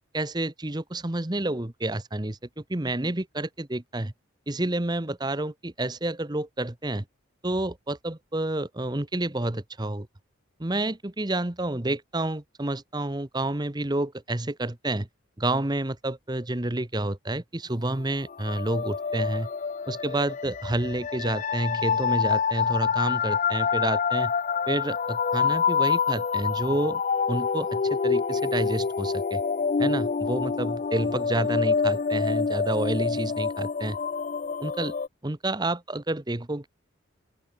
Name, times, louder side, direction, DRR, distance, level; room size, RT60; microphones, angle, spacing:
voice 1, 0.0-4.1 4.5-7.0 7.4-10.1 10.6-15.1 15.4-19.5 19.9-24.3 24.7-27.0 27.3-29.4 29.8-34.0 34.6-34.9 35.2-36.7, right 1 dB, 20° right, 1.0 m, -29 dB
sound 1, 18.3-35.1, left 5 dB, 40° left, 0.4 m, -27 dB
open air
head